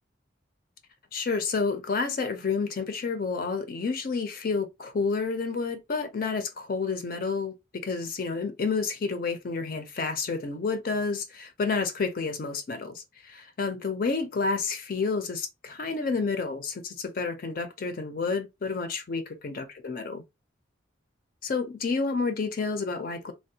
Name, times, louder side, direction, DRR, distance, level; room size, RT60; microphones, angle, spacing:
voice 1, 1.1-20.2 21.4-23.3, left 4 dB, 50° left, 0.4 m, -30 dB
3.3 x 2.1 x 2.6 m
head